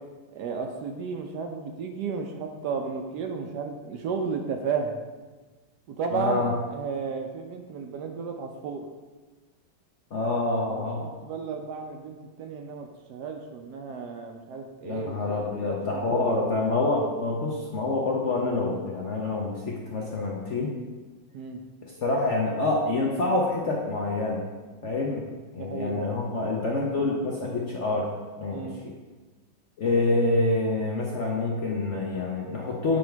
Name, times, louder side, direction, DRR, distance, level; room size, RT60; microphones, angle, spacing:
voice 1, 0.3-5.0 5.9-8.9 10.7-16.4 21.3-21.6 25.6-25.9 28.5-28.8, right 5 dB, 70° right, 4 dB, 1.1 m, -33 dB
voice 2, 6.1-6.5 10.1-11.0 14.8-20.7 21.8-24.5 24.8-25.2 25.5-28.1 28.4-28.9 29.8-33.0, left 2 dB, 55° left, -2 dB, 0.8 m, -27 dB
7.8 x 3.6 x 4.5 m, 1.3 s
omnidirectional pair, 2.1 m